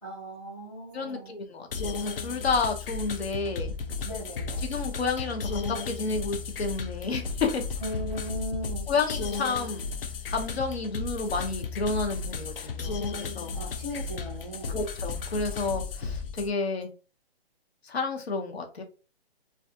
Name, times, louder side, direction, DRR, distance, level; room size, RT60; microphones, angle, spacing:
voice 1, 0.0-1.3 4.0-4.7 7.8-8.9 13.5-14.8, equal, 5° left, 0.7 m, -37 dB
voice 2, 0.9-3.7 4.6-7.6 8.9-9.9 10.3-13.6 14.7-16.9 17.8-18.8, left 4 dB, 75° left, 0.8 m, -31 dB
sound 1, 1.7-16.5, left 4 dB, 60° left, 0.5 m, -34 dB
2.5 x 2.3 x 2.6 m
hypercardioid pair, 170°, 31 cm